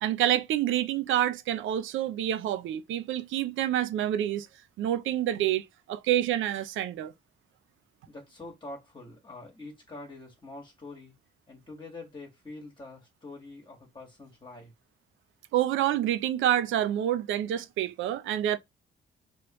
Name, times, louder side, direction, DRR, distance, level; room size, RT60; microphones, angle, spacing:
voice 1, 0.0-4.5 4.8-7.1 15.5-18.6, right 11 dB, 75° right, 0.5 m, -27 dB
voice 2, 8.1-11.1 11.5-14.7, left 2 dB, 25° left, 1.6 m, -45 dB
3.1 x 3.1 x 2.9 m
cardioid pair, 90°, 20 cm